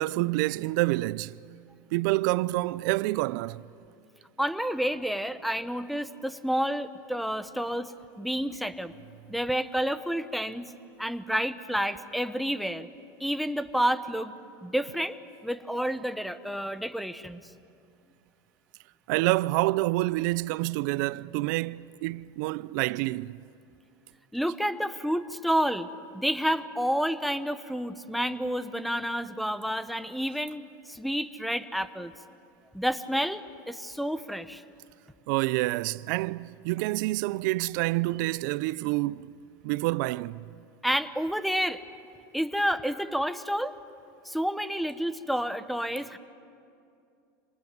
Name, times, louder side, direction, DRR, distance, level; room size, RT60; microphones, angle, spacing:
voice 1, 0.0-1.4 1.9-3.6 19.1-23.4 35.3-39.3 39.6-40.5, right 20 dB, 70° right, 0.6 m, -27 dB
voice 2, 4.4-8.9 9.3-10.7 11.0-12.9 13.2-14.3 14.6-15.2 15.4-17.4 24.3-25.9 26.1-32.1 32.7-34.6 40.8-41.8 42.3-43.8 44.2-46.2, equal, ahead, 1.0 m, -29 dB
26.5 x 19.5 x 9.4 m
supercardioid pair, 115°, 11 cm